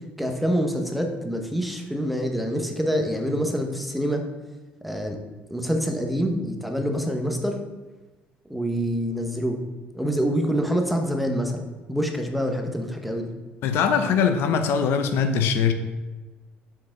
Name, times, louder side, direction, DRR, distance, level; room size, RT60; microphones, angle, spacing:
voice 1, 0.2-4.2 4.8-5.2 5.5-7.6 8.5-9.6 9.9-13.3, equal, ahead, 3 dB, 0.9 m, -26 dB
voice 2, 13.6-15.7, left 6 dB, 70° left, 8 dB, 0.7 m, -21 dB
5.9 x 4.7 x 6.4 m, 1.2 s
cardioid pair, 125°, 4 cm